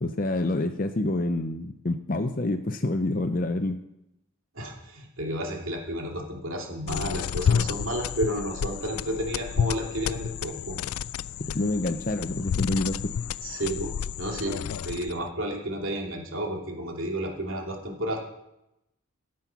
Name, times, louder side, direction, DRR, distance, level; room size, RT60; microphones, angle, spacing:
voice 1, 0.0-3.8 11.5-13.1, left 2 dB, 40° left, 7 dB, 0.6 m, -27 dB
voice 2, 4.5-10.8 13.4-18.2, right 1 dB, 70° right, 0 dB, 2.7 m, -32 dB
sound 1, 6.9-15.3, left 7 dB, 90° left, 0.3 m, -30 dB
13.5 x 7.6 x 5.9 m, 0.86 s
head